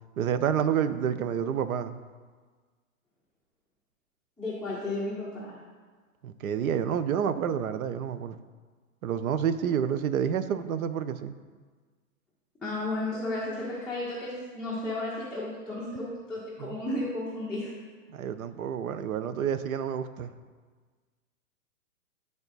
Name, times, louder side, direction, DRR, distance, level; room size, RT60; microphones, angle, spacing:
voice 1, 0.2-2.0 6.2-8.4 9.0-11.3 16.6-16.8 18.1-20.3, right 8 dB, 80° right, 12 dB, 0.6 m, -29 dB
voice 2, 4.4-5.6 12.6-17.7, left 2 dB, ahead, -8 dB, 0.6 m, -33 dB
8.9 x 3.5 x 4.0 m, 1.5 s
hypercardioid pair, 135°, 42 cm